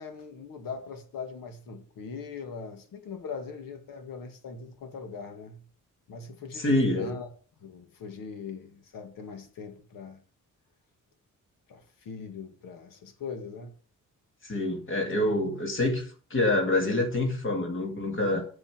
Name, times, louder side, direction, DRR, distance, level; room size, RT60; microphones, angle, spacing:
voice 1, 0.0-5.6 6.1-7.3 7.6-10.2 11.7-13.7, left 5 dB, 90° left, 2.1 m, -41 dB
voice 2, 6.5-7.1 14.4-18.5, left 1 dB, 40° left, 2.3 m, -26 dB
7.5 x 6.4 x 6.3 m
cardioid pair, 120°, 33 cm